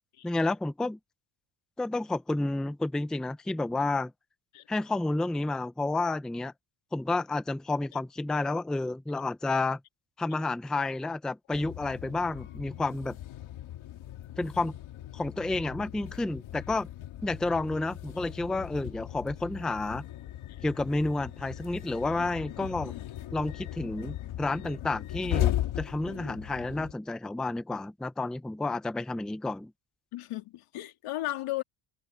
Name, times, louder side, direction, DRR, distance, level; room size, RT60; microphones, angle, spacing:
voice 1, 0.2-1.0 1.8-4.1 4.7-6.5 6.9-9.8 10.2-13.2 14.4-14.8 15.1-16.9 17.2-20.0 20.6-22.9 23.3-29.7, left 2 dB, ahead, 0.5 m, -30 dB
sound 1, 11.5-26.9, left 12 dB, 65° left, 2.2 m, -37 dB
voice 2, 30.1-31.6, left 16 dB, 85° left, 2.9 m, -35 dB
cardioid pair, 175°, 49 cm